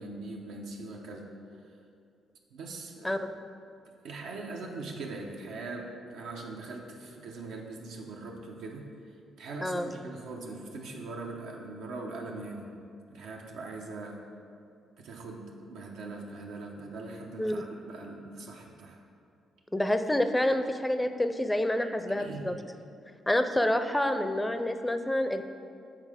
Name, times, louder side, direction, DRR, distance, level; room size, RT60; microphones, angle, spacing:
voice 1, 0.0-1.4 2.5-3.2 4.0-8.9 9.4-12.7 13.1-14.2 15.0-19.0 22.1-22.5, right 3 dB, 85° right, 0 dB, 0.7 m, -41 dB
voice 2, 19.7-22.5 23.3-25.4, left 1 dB, 10° left, 8 dB, 0.4 m, -28 dB
7.4 x 3.7 x 4.9 m, 2.5 s
cardioid pair, 90°, 0 cm